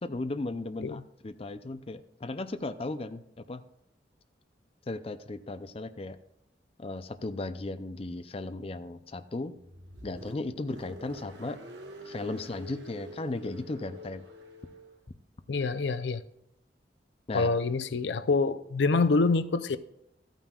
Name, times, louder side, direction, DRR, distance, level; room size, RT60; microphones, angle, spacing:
voice 1, 0.0-3.6 4.9-6.2 6.8-9.6 10.0-11.6 12.1-14.2 17.3-17.5, left 2 dB, 35° left, 0.5 m, -36 dB
Car, 9.5-15.0, equal, 80° right, 1.7 m, -47 dB
voice 2, 15.5-16.2 17.3-19.8, left 3 dB, 80° left, 0.6 m, -26 dB
13.5 x 9.1 x 2.4 m
head